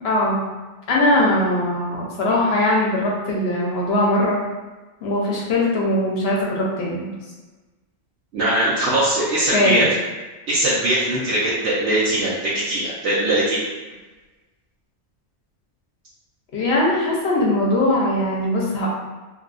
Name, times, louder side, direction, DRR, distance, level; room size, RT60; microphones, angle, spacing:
voice 1, 0.0-0.4 0.9-4.4 5.0-7.1 9.5-9.9 16.5-18.9, left 1 dB, 65° left, -3 dB, 0.9 m, -20 dB
voice 2, 8.3-9.8 10.5-13.6, right 1 dB, 70° right, -8 dB, 0.8 m, -21 dB
2.7 x 2.3 x 2.4 m, 1.2 s
omnidirectional pair, 1.2 m